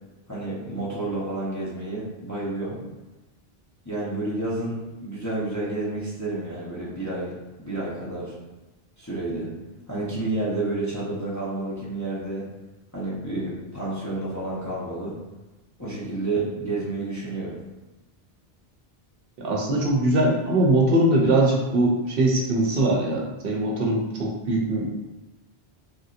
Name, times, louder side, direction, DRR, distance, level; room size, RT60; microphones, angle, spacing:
voice 1, 0.3-2.8 3.8-7.3 7.6-8.3 9.0-9.5 9.9-12.5 12.9-15.2 15.8-17.6, right 2 dB, 20° left, -8 dB, 0.6 m, -30 dB
voice 2, 19.4-24.9, right 1 dB, 70° right, -1 dB, 0.8 m, -22 dB
3.3 x 2.7 x 2.4 m, 1.1 s
omnidirectional pair, 1.0 m